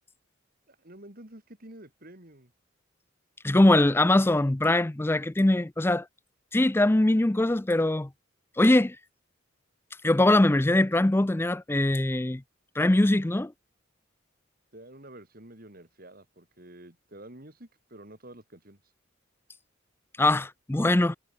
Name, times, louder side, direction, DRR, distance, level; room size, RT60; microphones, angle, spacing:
voice 1, 0.7-2.5 14.7-18.8, right 1 dB, 45° right, 3.6 m, -49 dB
voice 2, 3.4-6.1 6.5-8.1 8.6-9.0 10.0-12.4 12.8-13.5 20.2-21.2, left 1 dB, 10° left, 0.4 m, -22 dB
head